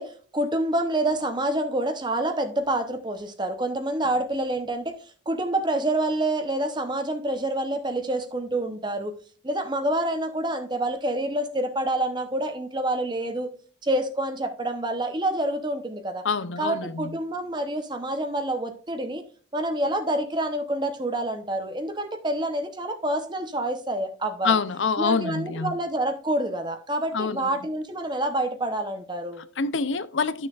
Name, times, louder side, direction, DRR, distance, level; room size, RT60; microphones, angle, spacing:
voice 1, 0.0-5.0 5.3-9.1 9.4-13.5 13.8-16.2 16.6-19.2 19.5-24.5 25.0-29.4, right 1 dB, 25° right, 0.8 m, -27 dB
voice 2, 16.2-17.1 24.4-25.7 27.1-27.5 29.6-30.5, left 4 dB, 85° left, 0.6 m, -26 dB
12.0 x 6.3 x 2.4 m
head